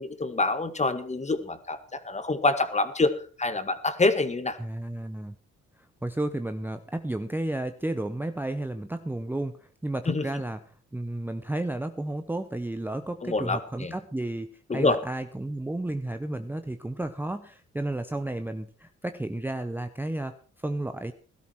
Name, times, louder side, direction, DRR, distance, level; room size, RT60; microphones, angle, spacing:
voice 1, 0.0-4.6 10.1-10.2 13.2-13.9 14.7-15.0, left 3 dB, 25° left, 11 dB, 1.8 m, -26 dB
voice 2, 4.6-5.4 5.8-21.1, right 1 dB, 5° right, 9 dB, 0.8 m, -32 dB
16.5 x 12.5 x 4.6 m, 0.41 s
cardioid pair, 90°, 29 cm